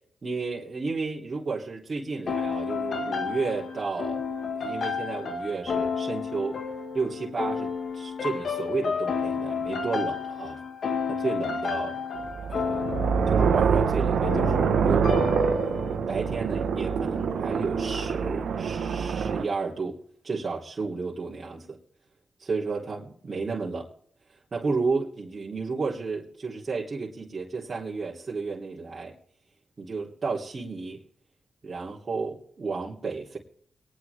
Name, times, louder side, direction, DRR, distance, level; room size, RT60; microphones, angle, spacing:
voice 1, 0.2-4.2 4.6-6.6 6.9-10.6 11.1-12.0 12.5-15.3 15.9-20.0 20.2-21.8 22.4-23.9 24.5-29.1 29.8-31.0 31.6-33.4, right 4 dB, 45° right, 3.4 m, -32 dB
sound 1, 2.3-16.0, left 5 dB, 70° left, 1.9 m, -31 dB
sound 2, 12.2-19.4, right 6 dB, 85° right, 1.3 m, -25 dB
23.0 x 10.0 x 3.6 m
cardioid pair, 65°, 0 cm